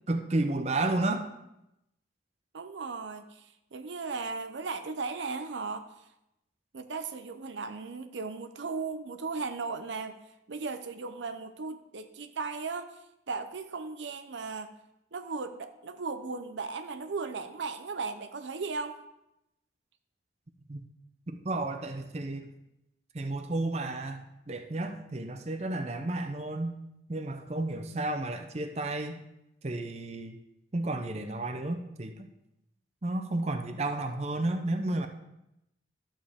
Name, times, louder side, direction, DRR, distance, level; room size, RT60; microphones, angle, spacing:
voice 1, 0.1-1.3 20.7-20.8 21.3-22.5 23.1-26.8 27.1-29.2 29.6-30.4 30.7-32.3 33.0-35.1, right 2 dB, 35° right, 6 dB, 0.6 m, -32 dB
voice 2, 2.5-5.9 6.7-10.2 10.5-13.0 13.3-14.7 15.1-19.0, right 4 dB, 75° right, 9 dB, 0.6 m, -36 dB
12.5 x 7.3 x 3.5 m, 0.86 s
head